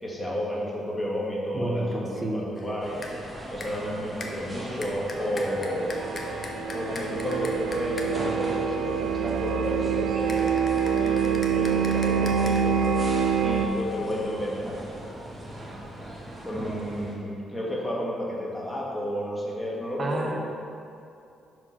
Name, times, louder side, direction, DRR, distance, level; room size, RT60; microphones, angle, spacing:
voice 1, 0.0-3.0 3.5-5.9 6.7-10.6 11.0-12.8 13.4-14.8 16.4-20.4, equal, 10° left, -4 dB, 1.7 m, -31 dB
voice 2, 1.5-2.5 20.0-20.4, right 2 dB, 35° right, 2 dB, 0.9 m, -30 dB
sound 1, 2.6-2.8 3.0-3.3 3.6-3.9 4.2-8.3 10.3-12.6, left 2 dB, 35° left, 0.9 m, -41 dB
sound 2, 2.8-17.1, right 1 dB, 20° right, 1.5 m, -39 dB
sound 3, 5.1-13.7, right 7 dB, 80° right, 0.4 m, -26 dB
5.9 x 4.7 x 5.7 m, 2.7 s
cardioid pair, 90°, 0 cm